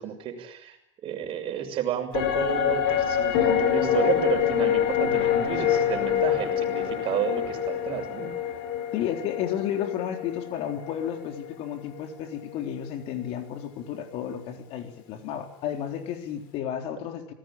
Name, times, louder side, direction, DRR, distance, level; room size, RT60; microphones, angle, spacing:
voice 1, 0.0-8.3, right 9 dB, 50° right, 4 dB, 6.4 m, -31 dB
sound 1, 2.1-11.7 12.0-12.1, left 9 dB, 75° left, 5.8 m, -26 dB
voice 2, 4.9-5.6 8.9-17.3, left 9 dB, 60° left, 5 dB, 3.8 m, -32 dB
26.5 x 19.5 x 9.0 m, 0.76 s
supercardioid pair, 120°, 12 cm